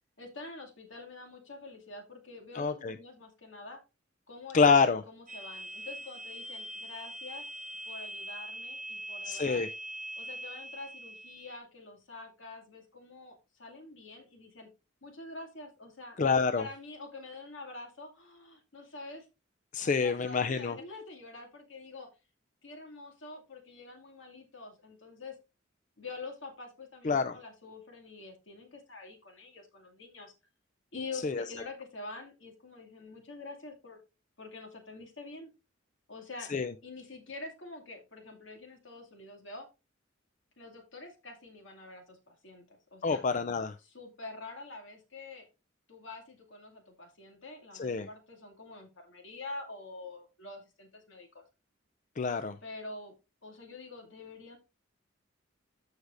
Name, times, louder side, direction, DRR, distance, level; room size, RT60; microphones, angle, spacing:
voice 1, 0.2-3.8 4.3-7.5 7.9-9.6 10.2-14.7 15.0-16.2 16.6-19.3 19.8-22.1 22.6-25.4 26.0-30.3 30.9-34.0 34.4-35.5 36.1-36.5 36.8-39.7 40.6-43.2 43.8-45.5 45.9-51.4 52.6-53.1 53.4-54.6, left 3 dB, 70° left, 2.4 m, -46 dB
voice 2, 2.5-2.9 4.5-5.0 9.2-9.7 16.2-16.6 19.7-20.8 27.0-27.4 31.2-31.4 36.5-36.7 43.0-43.8 47.7-48.1 52.2-52.6, left 5 dB, 40° left, 0.4 m, -27 dB
sound 1, 5.3-11.6, right 1 dB, 40° right, 0.9 m, -42 dB
14.5 x 4.8 x 2.5 m
head